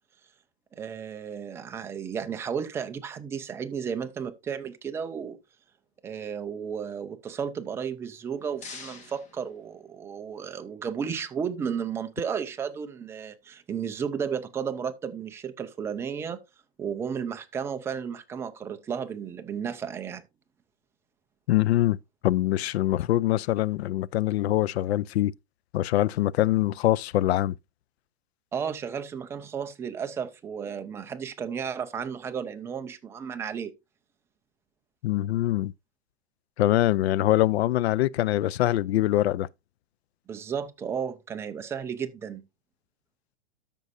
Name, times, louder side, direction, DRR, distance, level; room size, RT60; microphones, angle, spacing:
voice 1, 0.7-5.4 6.0-16.4 16.8-20.2 28.5-33.7 40.3-42.4, right 7 dB, 10° right, 0.3 m, -33 dB
sound 1, 8.0-10.3, left 4 dB, 20° left, 1.4 m, -47 dB
voice 2, 21.5-22.0 22.2-25.3 25.7-27.5 35.0-35.7 36.6-39.5, left 14 dB, 75° left, 0.5 m, -24 dB
13.0 x 5.3 x 2.5 m
hypercardioid pair, 140°, 32 cm